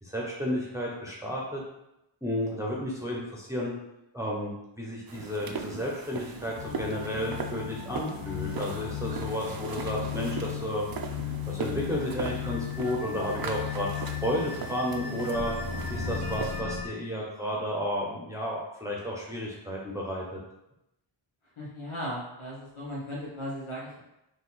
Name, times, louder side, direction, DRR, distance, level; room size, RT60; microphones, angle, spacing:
voice 1, 0.0-1.6 2.2-3.7 4.1-15.6 15.9-20.4, equal, 5° right, -4 dB, 0.8 m, -32 dB
sound 1, 5.1-16.6, right 5 dB, 50° right, 0.5 m, -40 dB
sound 2, 6.6-16.9, left 8 dB, 55° left, 0.8 m, -36 dB
voice 2, 21.6-24.0, equal, 85° left, -6 dB, 1.3 m, -37 dB
4.0 x 2.7 x 4.1 m, 0.88 s
wide cardioid pair, 60°, 47 cm